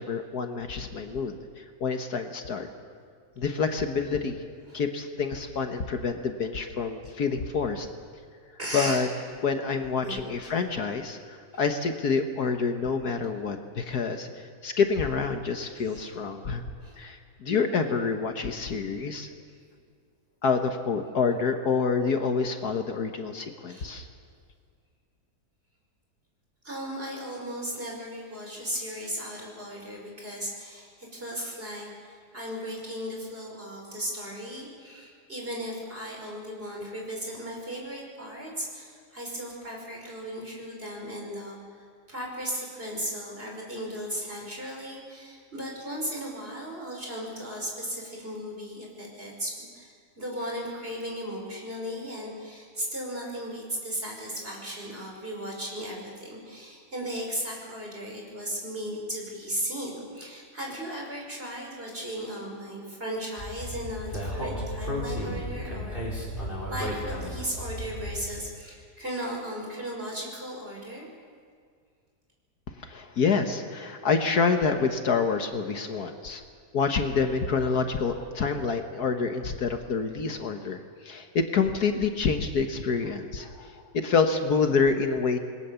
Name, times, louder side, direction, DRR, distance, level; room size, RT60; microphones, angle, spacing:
voice 1, 0.0-2.7 3.4-4.4 4.7-7.9 8.7-9.1 9.4-16.6 17.0-19.3 20.4-24.1 72.8-76.4 76.7-85.4, left 5 dB, 65° left, 6 dB, 1.8 m, -27 dB
voice 2, 8.6-9.0 10.0-10.2 10.4-10.6 13.9-14.0 15.9-16.1 16.8-17.1 23.6-23.9 26.6-71.1, equal, 35° right, -1 dB, 5.6 m, -36 dB
Speech, 63.4-68.3, equal, 30° left, 5.1 m, -34 dB
27.5 x 21.0 x 7.0 m, 2.1 s
omnidirectional pair, 1.8 m